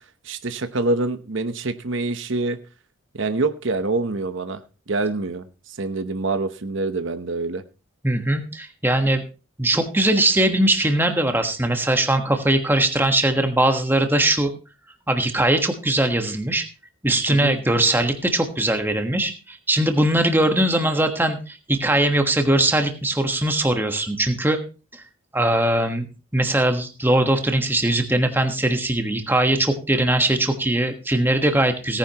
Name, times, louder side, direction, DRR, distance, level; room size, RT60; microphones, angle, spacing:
voice 1, 0.2-2.6 3.1-4.6 4.9-5.5 5.8-7.6 17.3-17.6, right 3 dB, 65° right, 10 dB, 0.9 m, -25 dB
voice 2, 8.0-9.2 9.6-14.5 15.1-16.6 17.0-24.6 24.9-25.0 25.3-26.1 26.3-32.0, right 1 dB, 10° right, 6 dB, 1.3 m, -20 dB
18.0 x 10.0 x 3.0 m, 0.33 s
head